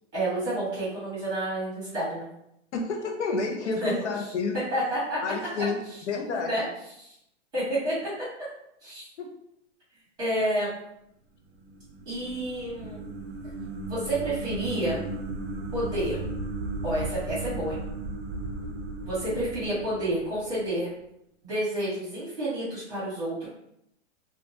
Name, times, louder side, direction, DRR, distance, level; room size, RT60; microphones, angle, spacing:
voice 1, 0.1-2.3 3.6-4.2 4.7-5.2 5.6-5.7 6.4-6.6 7.0-7.1 7.5-8.2 8.8-9.0 10.2-10.7 12.0-13.0 13.9-15.0 15.7-16.2 16.8-17.8 19.0-20.9 21.4-23.5, right 1 dB, 10° right, -11 dB, 1.0 m, -29 dB
voice 2, 2.7-4.6 5.2-5.8 6.1-6.6 9.2-9.3, left 4 dB, 70° left, 2 dB, 0.5 m, -30 dB
sound 1, 11.5-20.7, right 2 dB, 60° right, 0.5 m, -36 dB
2.2 x 2.2 x 2.6 m, 0.78 s
hypercardioid pair, 170°, 36 cm